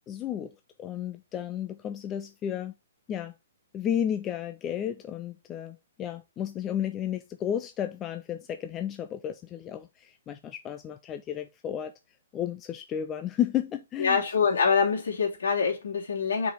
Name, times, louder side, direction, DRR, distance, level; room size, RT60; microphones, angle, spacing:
voice 1, 0.1-0.5 0.8-2.7 3.1-3.3 3.7-11.9 12.3-14.2, left 10 dB, 20° left, 0.4 m, -32 dB
voice 2, 14.0-16.5, left 5 dB, 80° left, 2.7 m, -25 dB
4.8 x 4.1 x 5.1 m
hypercardioid pair, 155°, 0 cm